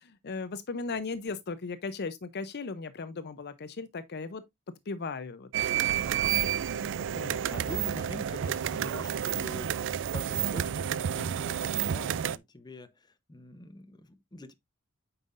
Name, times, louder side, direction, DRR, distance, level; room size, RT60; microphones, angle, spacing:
voice 1, 0.0-4.4 4.9-5.5 5.8-6.2 6.8-6.9 7.1-7.4, left 4 dB, 50° left, 0.6 m, -37 dB
sound 1, 5.5-12.4, right 9 dB, 60° right, 0.4 m, -30 dB
voice 2, 7.3-14.5, left 1 dB, 20° left, 0.8 m, -45 dB
9.0 x 5.6 x 2.5 m
head